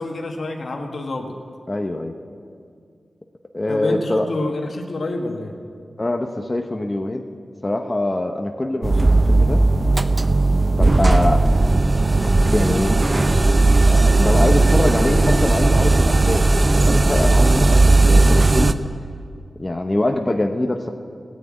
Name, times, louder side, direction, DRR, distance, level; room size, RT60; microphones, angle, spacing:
voice 1, 0.0-1.4 3.7-5.6, left 2 dB, 70° left, 2 dB, 1.6 m, -27 dB
voice 2, 1.7-2.1 3.5-4.3 6.0-7.3 7.6-9.6 10.7-11.5 12.5-13.4 13.8-18.7 19.6-20.9, left 1 dB, 30° left, 4 dB, 1.0 m, -24 dB
sound 1, 8.8-18.7, right 2 dB, 40° right, 0.7 m, -16 dB
14.5 x 9.6 x 8.8 m, 2.3 s
cardioid pair, 40°, 0 cm